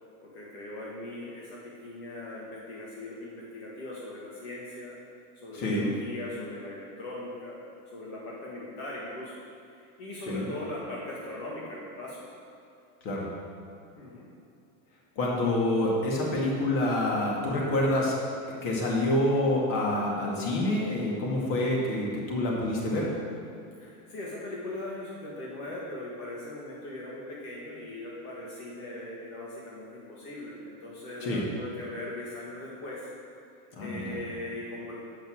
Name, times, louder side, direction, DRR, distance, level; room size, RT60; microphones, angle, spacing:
voice 1, 0.2-4.9 5.4-7.6 7.9-9.4 9.7-12.2 14.0-14.3 23.8-33.1 33.8-34.9, left 1 dB, 70° left, -5 dB, 1.9 m, -40 dB
voice 2, 5.5-5.9 10.3-10.5 13.0-13.3 15.2-18.1 18.6-23.1 31.2-31.4 33.7-34.2, left 1 dB, 50° left, -3 dB, 2.3 m, -27 dB
8.7 x 5.3 x 6.3 m, 2.5 s
supercardioid pair, 135°, 42 cm